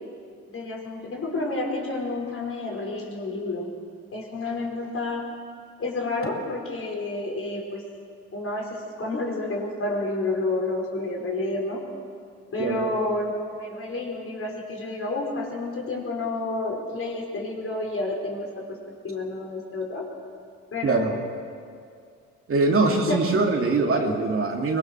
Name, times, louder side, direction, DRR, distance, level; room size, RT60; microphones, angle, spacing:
voice 1, 0.5-3.7 4.1-5.3 5.8-7.9 8.3-11.9 12.5-18.8 19.0-20.1 20.7-21.2 22.9-23.2, left 2 dB, 45° left, 0 dB, 5.2 m, -30 dB
voice 2, 22.5-24.8, right 3 dB, 45° right, 1 dB, 2.8 m, -22 dB
24.5 x 19.5 x 6.3 m, 2.3 s
cardioid pair, 90°, 30 cm